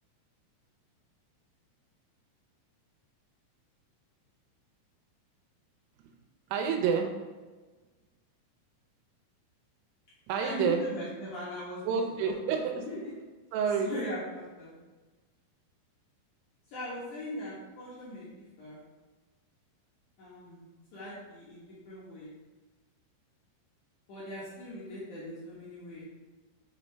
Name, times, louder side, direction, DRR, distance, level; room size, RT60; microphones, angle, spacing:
voice 1, 6.5-7.1 10.3-10.8 11.8-12.8 13.5-13.9, right 6 dB, 85° right, 3 dB, 3.3 m, -28 dB
voice 2, 10.4-12.3 12.8-13.0 13.8-14.7 16.7-18.8 20.2-20.6 20.9-22.3 24.1-26.0, left 1 dB, 90° left, -9 dB, 1.7 m, -40 dB
6.2 x 5.9 x 3.3 m, 1.3 s
omnidirectional pair, 5.8 m